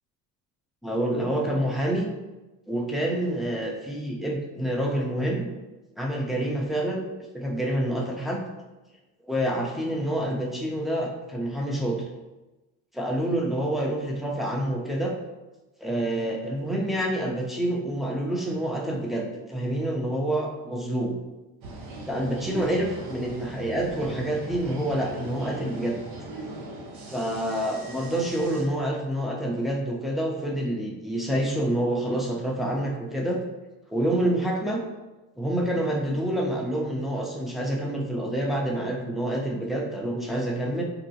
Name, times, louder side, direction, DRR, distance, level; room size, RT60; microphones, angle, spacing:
voice 1, 0.8-2.1 2.7-5.5 6.0-7.0 7.3-8.4 9.2-12.0 12.9-15.1 15.8-21.1 22.1-26.0 27.1-33.4 33.9-34.8 35.4-40.8, right 1 dB, ahead, -1 dB, 0.6 m, -27 dB
sound 1, 21.6-28.6, right 2 dB, 55° right, 0.9 m, -39 dB
3.9 x 2.2 x 2.7 m, 1.1 s
supercardioid pair, 75°, 43 cm